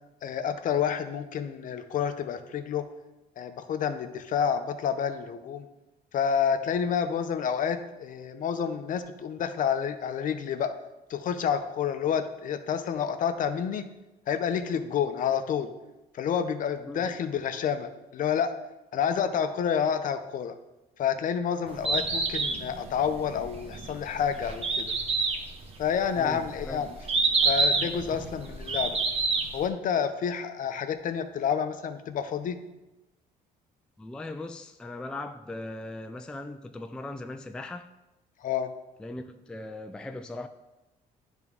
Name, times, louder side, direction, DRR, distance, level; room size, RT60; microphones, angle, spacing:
voice 1, 0.2-2.9 3.4-5.7 6.1-10.7 11.1-13.9 14.3-15.7 16.1-18.5 18.9-20.6 21.0-24.9 25.8-27.0 27.4-29.0 29.5-32.6 38.4-38.7, left 7 dB, 50° left, 9 dB, 0.6 m, -29 dB
Bird, 21.7-29.7, right 3 dB, 35° right, 1.1 m, -28 dB
voice 2, 26.2-26.9 34.0-37.9 39.0-40.5, left 2 dB, 5° left, 7 dB, 0.3 m, -39 dB
10.0 x 3.6 x 3.6 m, 1.0 s
cardioid pair, 110°, 17 cm